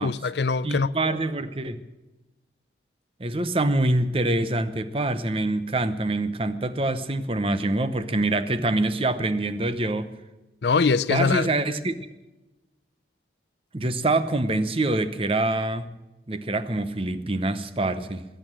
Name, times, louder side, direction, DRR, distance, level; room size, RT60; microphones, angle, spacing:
voice 1, 0.0-1.2 10.6-11.5, left 4 dB, 70° left, 0.5 m, -23 dB
voice 2, 0.6-1.8 3.2-10.1 11.1-11.9 13.7-15.9 16.3-18.2, right 2 dB, 30° right, 0.8 m, -25 dB
20.5 x 8.9 x 7.5 m
head